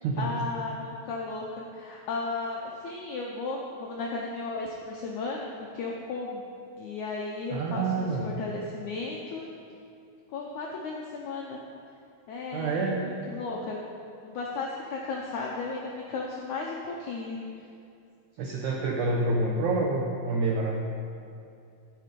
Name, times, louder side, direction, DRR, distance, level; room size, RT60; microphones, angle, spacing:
voice 1, 0.2-6.4 6.8-9.5 10.3-11.6 12.3-13.8 14.2-17.4, left 3 dB, 80° left, -2 dB, 1.7 m, -35 dB
voice 2, 7.5-8.3 12.5-13.1 18.4-20.8, right 3 dB, 85° right, 0 dB, 1.7 m, -27 dB
13.0 x 6.7 x 5.2 m, 2.5 s
omnidirectional pair, 4.5 m